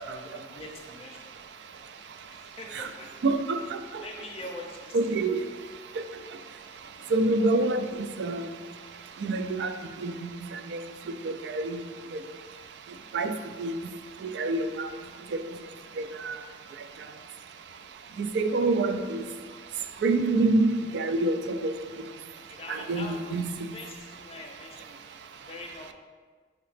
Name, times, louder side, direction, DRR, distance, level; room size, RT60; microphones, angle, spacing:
voice 1, 0.1-1.3 2.3-3.1 3.5-3.7 4.0-5.2 6.8-7.1 10.1-10.3 22.3-25.0 25.4-25.9, left 2 dB, 35° left, 0.5 m, -44 dB
voice 2, 3.2-3.6 4.9-5.4 7.1-7.8 8.2-8.5 9.2-9.7 10.0-10.3 10.7-10.8 11.2-11.8 13.1-13.8 14.2-14.9 16.2-16.4 18.2-19.2 20.0-21.4 21.6-21.7 22.7-23.5, right 2 dB, 75° right, 0.3 m, -26 dB
5.6 x 2.9 x 3.2 m
head